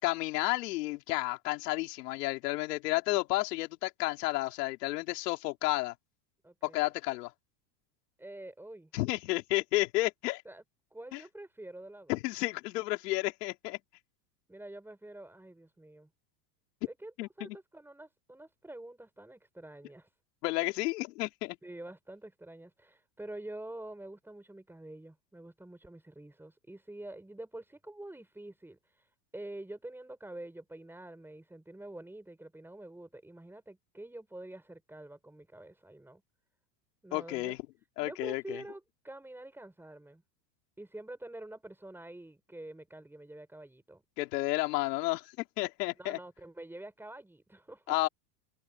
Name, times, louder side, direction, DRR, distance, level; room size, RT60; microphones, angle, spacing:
voice 1, 0.0-5.9 6.6-7.3 8.9-10.4 11.1-11.2 12.1-13.8 17.2-17.6 20.4-21.6 37.1-37.6 38.0-38.6 44.2-45.3 45.6-46.2 47.9-48.1, left 20 dB, 75° left, 4.2 m, -31 dB
voice 2, 6.4-6.9 8.2-8.9 10.4-10.6 10.9-12.1 14.5-16.1 16.9-20.1 21.6-36.2 37.0-37.6 38.0-40.2 40.8-44.0 46.0-48.0, right 1 dB, 5° right, 6.1 m, -47 dB
supercardioid pair, 130°, 48 cm